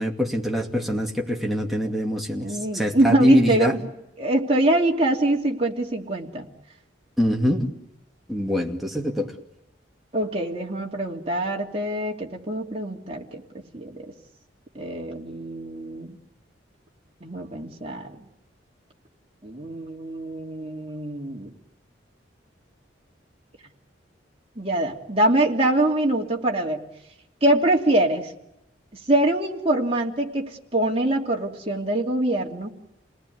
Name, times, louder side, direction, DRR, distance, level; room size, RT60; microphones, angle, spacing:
voice 1, 0.0-3.8 7.2-7.7 8.3-9.3, left 1 dB, ahead, -1 dB, 2.5 m, -24 dB
voice 2, 2.4-3.8 4.2-6.5 10.1-13.4 13.7-14.1 14.7-16.2 17.2-18.2 19.4-21.5 24.6-26.9 27.4-28.3 29.1-32.7, right 1 dB, 30° right, -1 dB, 2.8 m, -24 dB
28.5 x 19.5 x 9.5 m, 0.87 s
head